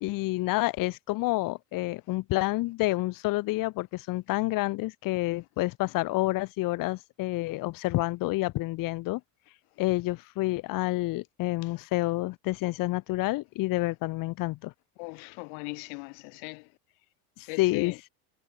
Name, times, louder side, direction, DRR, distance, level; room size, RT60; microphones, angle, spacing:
voice 1, 0.0-9.2 9.8-14.7 17.6-18.0, left 20 dB, 50° left, 0.8 m, -29 dB
voice 2, 15.0-16.6 17.5-17.9, left 40 dB or more, 75° left, 0.7 m, -39 dB
supercardioid pair, 125°, 44 cm